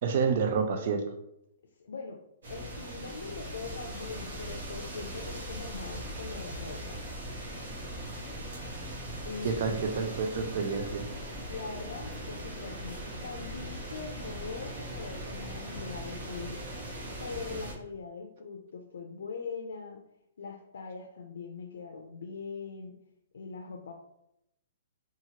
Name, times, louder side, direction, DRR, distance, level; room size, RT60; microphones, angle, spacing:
voice 1, 0.0-1.1 9.4-11.1, right 5 dB, 35° right, 6 dB, 0.3 m, -29 dB
voice 2, 1.8-2.2 2.5-7.0 9.2-10.1 11.5-16.6 17.2-20.0 20.4-23.0 23.3-23.9, left 5 dB, 90° left, 2 dB, 0.4 m, -41 dB
sound 1, 2.4-17.7, right 1 dB, 70° right, 0.9 m, -40 dB
2.8 x 2.3 x 2.8 m, 0.80 s
hypercardioid pair, 180°, 0 cm